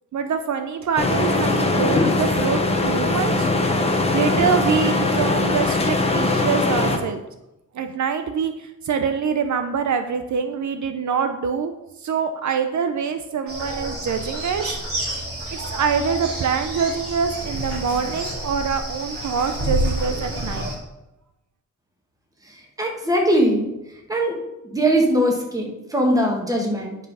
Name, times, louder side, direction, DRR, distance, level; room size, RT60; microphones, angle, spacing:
voice 1, 0.1-3.5 4.1-7.2 7.7-11.7 12.0-14.8 15.5-20.7, right 6 dB, 60° right, 7 dB, 0.7 m, -25 dB
sound 1, 1.0-7.0, left 2 dB, 20° left, 1.0 m, -21 dB
ambience lake morning water birds crickets, 13.5-20.7, right 1 dB, 45° right, 3.4 m, -29 dB
voice 2, 22.4-23.7 24.1-24.4 24.7-27.0, right 1 dB, 10° right, 1 dB, 1.6 m, -21 dB
10.0 x 5.6 x 5.5 m, 0.93 s
wide cardioid pair, 175°, 32 cm